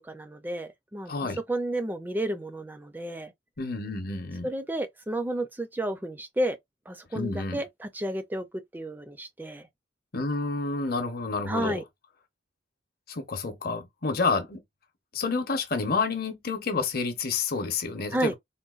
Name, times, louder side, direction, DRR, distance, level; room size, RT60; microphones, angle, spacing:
voice 1, 0.0-1.1 1.5-3.3 4.4-6.6 6.9-9.7 11.5-11.8 18.1-18.3, right 1 dB, 10° right, 0.4 m, -31 dB
voice 2, 1.1-1.4 3.6-4.5 7.1-7.6 10.1-11.8 13.1-14.6 15.1-18.3, left 4 dB, 55° left, 0.8 m, -29 dB
3.8 x 2.2 x 2.4 m
head